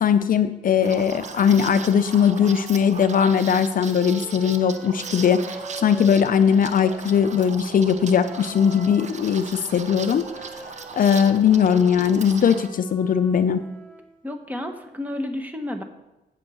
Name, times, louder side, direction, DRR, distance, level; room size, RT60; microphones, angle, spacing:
voice 1, 0.0-5.4 5.8-10.2 10.5-13.6, left 7 dB, 55° left, 10 dB, 0.6 m, -19 dB
Liquid, 0.8-12.7, right 5 dB, 45° right, 0.8 m, -38 dB
Wind instrument woodwind instrument, 1.0-7.4 8.1-14.2, right 1 dB, 10° left, 2.4 m, -44 dB
voice 2, 14.2-15.8, left 1 dB, 10° right, 5 dB, 1.2 m, -31 dB
8.1 x 7.7 x 7.0 m, 0.96 s
cardioid pair, 120°, 17 cm